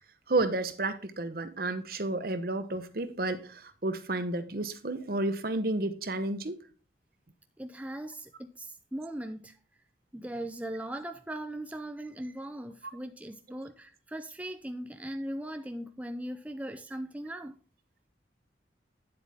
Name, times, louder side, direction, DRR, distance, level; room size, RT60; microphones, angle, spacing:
voice 1, 0.3-6.6 12.8-12.9, right 2 dB, 55° right, 0.9 m, -31 dB
voice 2, 7.6-9.6 10.1-17.6, right 1 dB, 10° right, 0.4 m, -39 dB
9.5 x 7.9 x 3.5 m
head